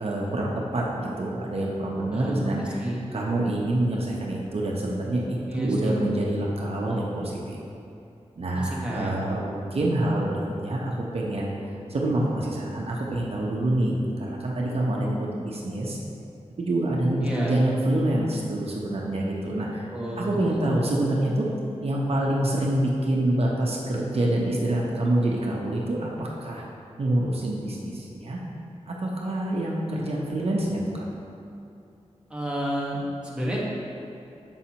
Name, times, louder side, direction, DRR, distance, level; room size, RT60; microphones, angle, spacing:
voice 1, 0.0-7.6 8.4-11.5 11.9-16.0 16.6-19.9 20.2-21.5 21.8-26.6 27.0-28.4 28.9-31.1, right 1 dB, 60° right, -3 dB, 0.8 m, -26 dB
voice 2, 2.1-3.0 5.5-6.0 8.5-9.1 17.2-17.6 19.9-20.7 32.3-33.6, equal, 10° right, -5 dB, 1.2 m, -30 dB
7.1 x 5.6 x 2.9 m, 2.7 s
wide cardioid pair, 85°, 12 cm